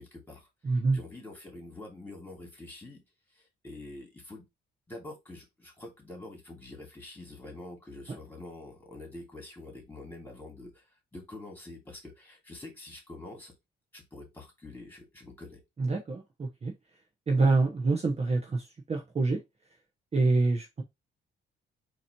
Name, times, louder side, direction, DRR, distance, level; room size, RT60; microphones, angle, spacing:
voice 1, 0.0-3.0 3.3-4.5 4.9-13.5 13.9-15.6, left 2 dB, 10° left, 2.6 m, -46 dB
voice 2, 0.6-1.0 15.8-16.7 17.3-19.4 20.1-20.8, right 3 dB, 30° right, 1.0 m, -26 dB
4.0 x 3.0 x 4.4 m
cardioid pair, 90°, 20 cm